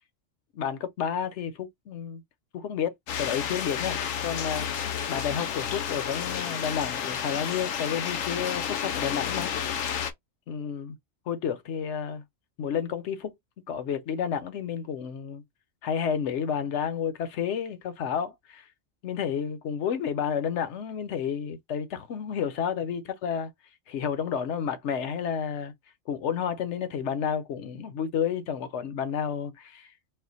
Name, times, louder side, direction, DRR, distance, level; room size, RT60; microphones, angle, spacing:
voice 1, 0.5-2.2 2.5-9.5 10.5-11.0 11.3-12.2 12.6-13.3 13.7-15.4 15.8-18.6 19.0-23.5 23.9-25.7 26.1-29.9, left 7 dB, 65° left, 1.0 m, -31 dB
sound 1, 3.1-10.1, left 8 dB, 90° left, 1.1 m, -31 dB
4.2 x 2.2 x 4.0 m
omnidirectional pair, 1.3 m